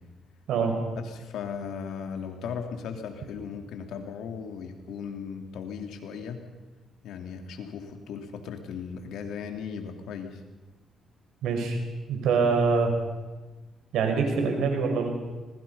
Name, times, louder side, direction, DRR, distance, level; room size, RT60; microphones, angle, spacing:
voice 1, 0.5-0.8 11.4-11.8 12.1-12.9 13.9-15.1, right 5 dB, 85° right, 4 dB, 5.4 m, -24 dB
voice 2, 1.0-6.4 7.0-10.4, left 6 dB, 80° left, 4 dB, 3.1 m, -37 dB
25.5 x 20.5 x 5.7 m, 1.2 s
cardioid pair, 90°, 0 cm